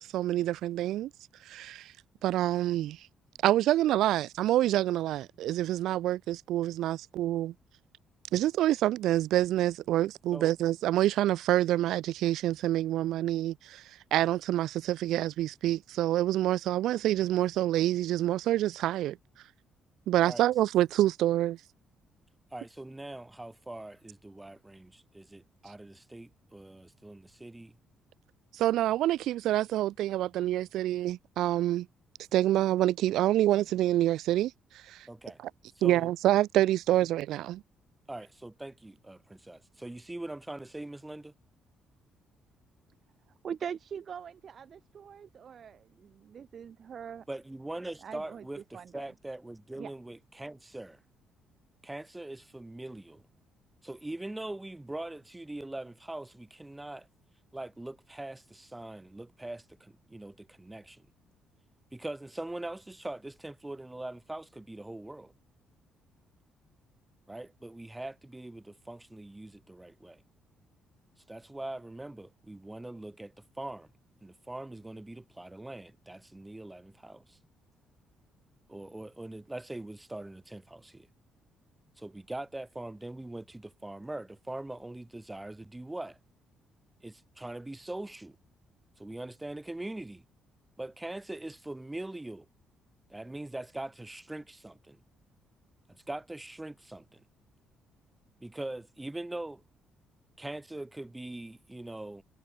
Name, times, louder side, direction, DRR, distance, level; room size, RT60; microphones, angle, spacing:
voice 1, 0.1-1.1 1.5-1.9 2.2-3.0 3.4-7.5 8.3-13.8 14.1-19.2 20.1-21.6 28.5-31.9 32.3-34.5 34.9-35.1 35.8-37.6, right 14 dB, 75° right, 0.4 m, -27 dB
voice 2, 22.5-27.8 35.1-35.4 35.8-36.1 38.1-41.3 47.3-51.0 51.8-53.2 53.8-57.1 57.5-61.1 61.9-65.3 67.3-70.2 71.3-73.9 74.2-77.4 78.7-81.1 82.0-86.2 87.0-88.4 89.0-90.2 90.8-92.5 93.1-95.0 96.1-97.2 98.4-99.6 100.4-102.2, right 1 dB, 5° right, 2.1 m, -42 dB
voice 3, 43.4-47.3 48.0-48.4 48.7-49.1 49.8-49.9, right 7 dB, 35° right, 1.0 m, -42 dB
cardioid pair, 170°, 0 cm